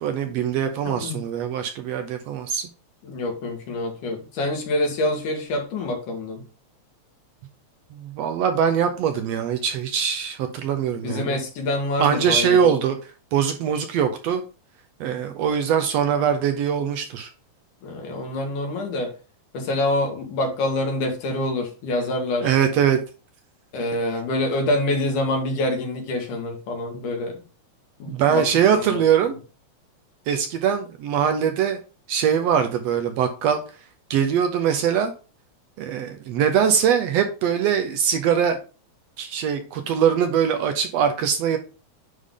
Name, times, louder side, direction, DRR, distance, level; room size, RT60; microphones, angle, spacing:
voice 1, 0.0-2.7 7.9-11.4 12.0-13.0 13.3-14.4 15.0-17.3 22.4-23.0 28.1-29.4 30.3-31.8 32.1-33.6 34.1-35.1 35.8-38.6 39.2-41.6, right 8 dB, 75° right, 1.6 m, -22 dB
voice 2, 3.0-6.4 11.0-12.8 17.8-19.1 19.5-22.5 23.7-27.4 28.0-29.0, left 1 dB, 90° left, 3.2 m, -26 dB
9.8 x 3.7 x 3.7 m
omnidirectional pair, 3.5 m